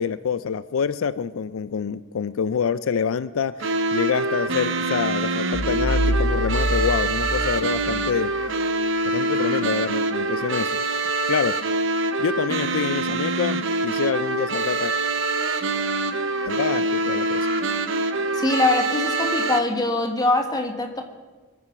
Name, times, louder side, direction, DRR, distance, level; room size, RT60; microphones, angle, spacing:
voice 1, 0.0-8.3 9.0-10.8 11.3-11.6 12.2-14.9 16.5-17.5, left 6 dB, 80° left, 15 dB, 0.4 m, -26 dB
sound 1, 3.6-19.6, right 2 dB, 65° right, 0.9 m, -25 dB
sound 2, 5.5-8.2, equal, 45° left, 1.3 m, -25 dB
voice 2, 18.3-21.0, left 2 dB, 20° left, 4 dB, 1.6 m, -23 dB
23.5 x 9.4 x 6.0 m, 1.4 s
head